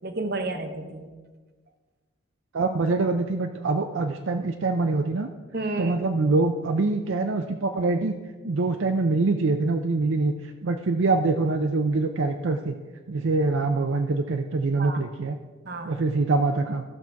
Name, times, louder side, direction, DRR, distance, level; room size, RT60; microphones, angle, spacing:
voice 1, 0.0-1.1 5.5-6.0 14.8-15.0 15.7-16.0, right 2 dB, 50° right, 6 dB, 1.0 m, -31 dB
voice 2, 2.5-5.3 5.8-8.1 8.4-10.3 10.6-12.8 13.1-15.4 15.8-16.8, right 3 dB, 70° right, 5 dB, 0.5 m, -24 dB
14.5 x 6.0 x 4.6 m, 1.4 s
head